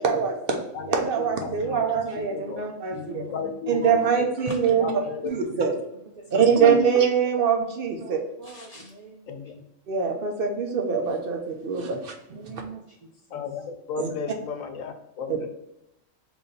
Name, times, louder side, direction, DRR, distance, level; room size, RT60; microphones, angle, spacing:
voice 1, 0.0-0.6 0.9-3.2 3.7-4.9 5.2-5.7 6.3-8.2 9.9-12.6 14.0-14.1 15.3-15.5, right 6 dB, 55° right, 3 dB, 0.7 m, -23 dB
voice 2, 0.7-2.6 2.9-4.0 4.8-5.6 6.3-6.5 9.3-9.6 13.3-15.5, left 5 dB, 85° left, 6 dB, 1.0 m, -35 dB
voice 3, 1.7-2.4 3.0-3.5 4.5-5.3 6.2-6.3 8.0-9.4 12.3-13.0 13.3-13.4, right 2 dB, 75° right, -2 dB, 0.3 m, -40 dB
3.1 x 2.6 x 3.9 m, 0.87 s
omnidirectional pair, 1.4 m